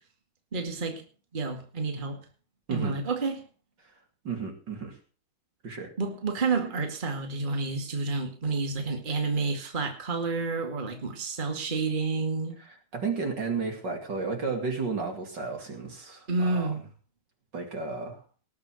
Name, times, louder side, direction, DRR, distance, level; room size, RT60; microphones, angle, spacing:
voice 1, 0.5-1.0 1.3-2.2 2.7-3.4 6.0-12.5 16.3-16.8, right 3 dB, 25° right, 2.2 m, -29 dB
voice 2, 4.2-5.0 5.6-5.9 12.6-16.7 17.5-18.2, right 4 dB, 55° right, 3.1 m, -33 dB
19.0 x 7.2 x 6.4 m
omnidirectional pair, 2.4 m